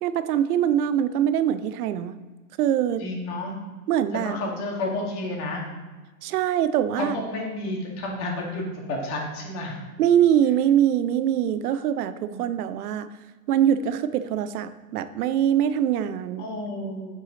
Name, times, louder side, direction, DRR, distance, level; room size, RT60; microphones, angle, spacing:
voice 1, 0.0-2.2 2.6-3.0 3.9-4.4 6.2-7.2 10.0-13.1 13.5-16.4, right 10 dB, 85° right, 12 dB, 0.7 m, -23 dB
voice 2, 3.0-3.5 4.1-5.6 7.0-9.8 12.2-12.4 16.4-17.2, left 2 dB, 55° left, -1 dB, 2.2 m, -31 dB
8.2 x 4.9 x 3.9 m, 1.3 s
supercardioid pair, 135°, 44 cm